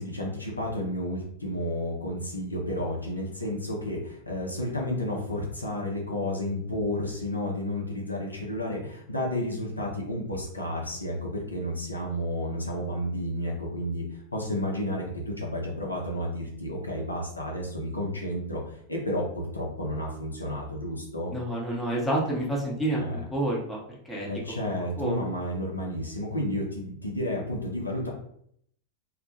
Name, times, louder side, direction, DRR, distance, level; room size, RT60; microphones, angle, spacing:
voice 1, 0.0-14.0 14.3-21.3 23.0-23.2 24.2-28.1, left 1 dB, 85° left, -2 dB, 0.6 m, -31 dB
voice 2, 21.3-23.8 24.1-24.6 25.0-25.2, right 1 dB, 10° left, -3 dB, 0.7 m, -29 dB
2.1 x 2.1 x 2.7 m, 0.67 s
figure-of-eight pair, 90°, 0 cm